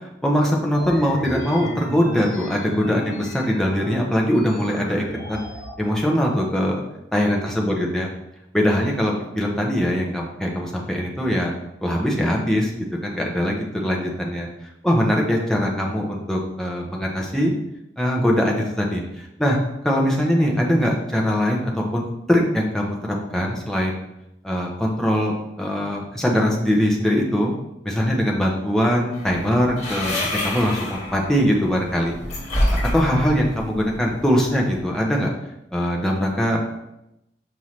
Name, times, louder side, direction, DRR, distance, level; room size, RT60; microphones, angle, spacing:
voice 1, 0.2-5.4 5.8-6.8 7.1-8.1 8.5-11.5 11.8-12.7 13.0-14.5 14.8-17.5 18.0-19.0 19.4-19.6 19.8-24.0 24.4-27.5 27.8-32.2 32.9-35.3 35.7-36.6, equal, 5° left, -2 dB, 0.9 m, -22 dB
sound 1, 0.7-5.7, left 1 dB, 55° left, 1.5 m, -34 dB
sound 2, 29.1-34.8, left 1 dB, 35° left, 1.8 m, -28 dB
5.7 x 5.5 x 3.2 m, 0.85 s
head